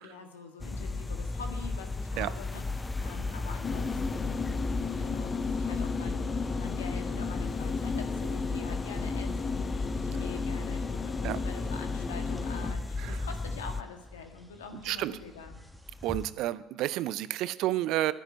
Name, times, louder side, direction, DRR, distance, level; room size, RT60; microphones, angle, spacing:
voice 1, 0.0-15.5, left 5 dB, 80° left, 4 dB, 1.7 m, -45 dB
sound 1, 0.6-13.8, left 3 dB, 15° left, 0.6 m, -35 dB
sound 2, 3.6-12.7, left 5 dB, 35° left, 1.0 m, -35 dB
sound 3, 7.9-16.3, left 1 dB, ahead, 1.5 m, -50 dB
voice 2, 14.8-15.2 16.0-18.1, right 15 dB, 60° right, 17 dB, 0.5 m, -30 dB
11.5 x 10.5 x 8.9 m, 1.0 s
figure-of-eight pair, 60°, 0 cm